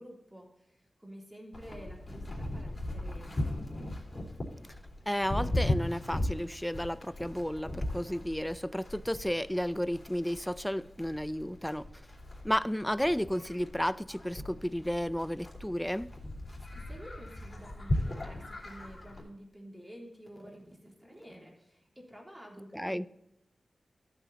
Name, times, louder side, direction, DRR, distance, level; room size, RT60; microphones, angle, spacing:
voice 1, 0.0-3.6 16.7-23.1, equal, 15° right, 3.3 m, -50 dB
Livestock farm animals working animals, 1.5-19.2, left 1 dB, 35° left, 3.6 m, -38 dB
voice 2, 5.1-11.8 12.4-16.1 22.7-23.1, equal, 5° left, 0.4 m, -32 dB
13.5 x 8.2 x 2.9 m
wide cardioid pair, 75°, 0 cm